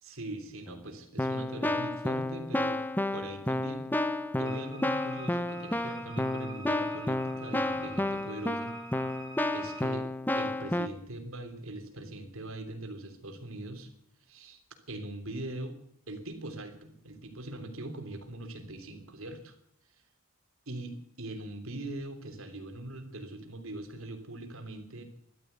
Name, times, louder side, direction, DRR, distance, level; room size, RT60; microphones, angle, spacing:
voice 1, 0.0-2.8 3.1-3.9 4.3-8.7 9.5-13.9 14.3-14.6 14.9-15.8 16.1-19.6 20.7-25.0, right 1 dB, 75° right, 5 dB, 3.2 m, -41 dB
Keyboard (musical), 0.7-0.8 1.2-10.9, left 1 dB, 10° left, 0.7 m, -31 dB
Wind instrument woodwind instrument, 4.4-9.9, right 3 dB, 25° right, 2.9 m, -47 dB
14.0 x 12.0 x 8.0 m, 0.74 s
head